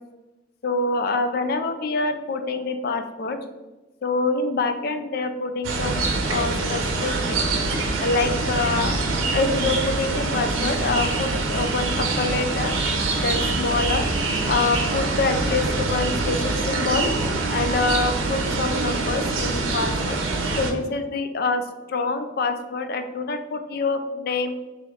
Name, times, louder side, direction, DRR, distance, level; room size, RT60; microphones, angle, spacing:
voice 1, 0.6-3.4 4.0-7.5 8.0-8.9 9.3-12.7 13.1-14.0 14.5-17.1 17.5-20.2 20.6-21.6 21.9-24.5, left 3 dB, 50° left, 7 dB, 0.4 m, -26 dB
sound 1, 5.6-20.7, right 3 dB, 85° right, 0.6 m, -24 dB
3.2 x 3.1 x 3.7 m, 1.1 s
head